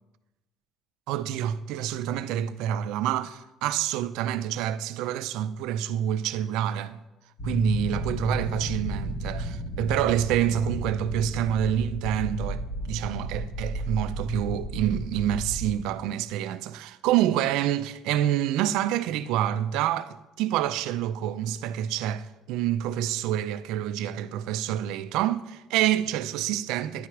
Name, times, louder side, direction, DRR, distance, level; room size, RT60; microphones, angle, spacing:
voice 1, 1.1-7.0 7.4-27.1, right 11 dB, 90° right, 0.4 m, -27 dB
sound 1, 7.4-15.7, equal, 55° left, 2.0 m, -33 dB
10.0 x 4.8 x 5.9 m
cardioid pair, 170°, 0 cm